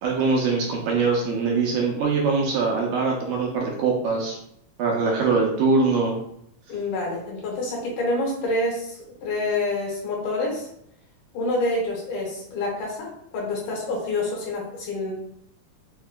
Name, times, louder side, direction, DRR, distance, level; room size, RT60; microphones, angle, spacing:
voice 1, 0.0-4.4 4.8-6.2, right 4 dB, 75° right, -1 dB, 2.0 m, -22 dB
voice 2, 6.7-10.7 11.3-13.1 13.3-15.1, left 2 dB, 75° left, -3 dB, 2.6 m, -27 dB
5.6 x 2.6 x 2.2 m, 0.71 s
omnidirectional pair, 3.7 m